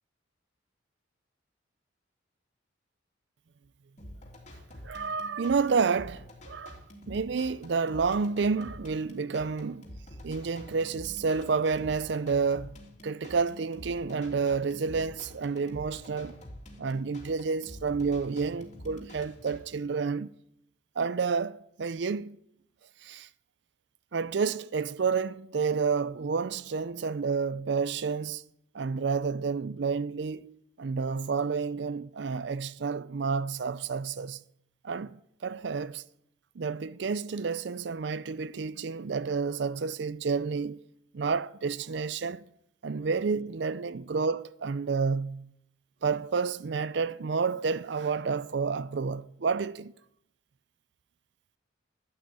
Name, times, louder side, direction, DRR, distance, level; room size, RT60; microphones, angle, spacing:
sound 1, 4.0-19.6, left 1 dB, 35° left, 3.1 m, -47 dB
voice 1, 4.8-6.8 7.1-9.9 10.2-16.4 16.8-20.3 21.0-22.4 23.0-23.3 24.1-28.4 28.7-34.4 34.8-36.0 36.6-40.8 41.1-42.4 42.8-45.5 46.0-49.9, right 5 dB, 60° right, 0.5 m, -30 dB
12.0 x 12.0 x 8.8 m
head